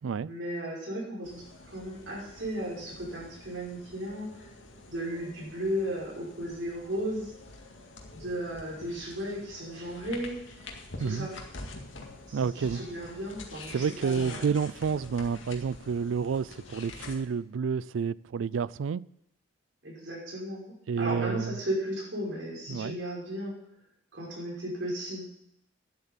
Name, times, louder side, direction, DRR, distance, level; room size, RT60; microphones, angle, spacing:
voice 1, 0.3-4.5 4.9-7.3 8.1-10.4 11.0-11.4 12.3-14.4 19.8-23.6 24.1-25.3, equal, 70° right, 5.6 m, -35 dB
sound 1, 1.2-17.2, left 2 dB, 85° left, 2.0 m, -47 dB
voice 2, 12.3-12.8 13.7-19.0 20.9-21.6 22.7-23.0, right 6 dB, 90° right, 0.4 m, -29 dB
11.0 x 8.1 x 7.2 m
head